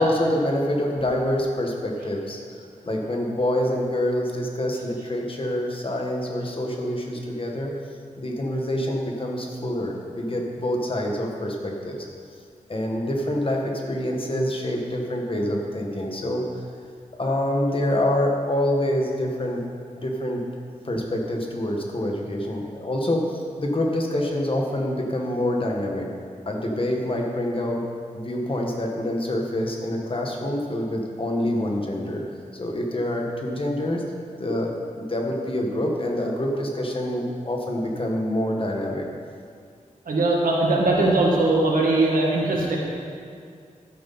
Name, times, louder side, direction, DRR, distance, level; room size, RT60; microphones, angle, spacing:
voice 1, 0.0-2.4 2.8-7.7 8.2-12.0 12.7-16.4 17.2-19.7 19.9-20.4 20.8-26.1 26.4-27.8 28.1-32.2 32.5-34.0 34.4-39.0, left 1 dB, 40° left, 1 dB, 1.6 m, -26 dB
voice 2, 40.1-42.8, right 2 dB, 90° right, -3 dB, 2.1 m, -20 dB
12.5 x 9.4 x 4.3 m, 2.3 s
wide cardioid pair, 95°, 14 cm